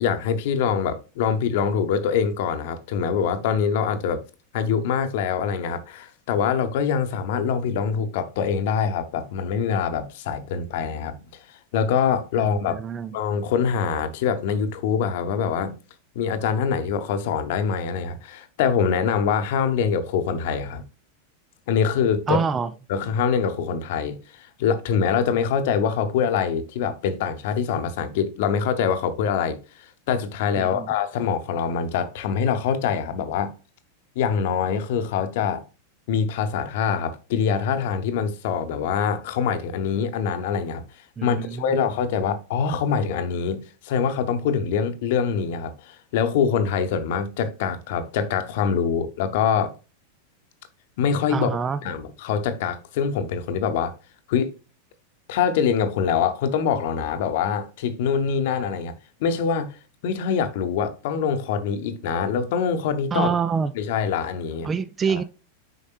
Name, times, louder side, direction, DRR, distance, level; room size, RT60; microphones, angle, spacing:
voice 1, 0.0-4.2 4.5-11.2 11.7-12.8 13.1-15.8 16.1-20.8 21.7-22.4 22.9-29.6 30.1-33.5 34.2-35.7 36.1-40.9 41.2-49.7 51.0-51.5 51.8-53.9 54.3-54.5 55.3-58.9 59.2-59.8 60.0-63.3 63.7-64.7 65.1-65.2, left 7 dB, 50° left, 0.9 m, -24 dB
voice 2, 12.7-13.1 22.3-22.7 30.6-30.9 41.2-41.8 51.3-51.8 63.1-63.7 64.6-65.2, right 6 dB, 20° right, 0.4 m, -26 dB
8.0 x 5.3 x 2.3 m
figure-of-eight pair, 90°, 0 cm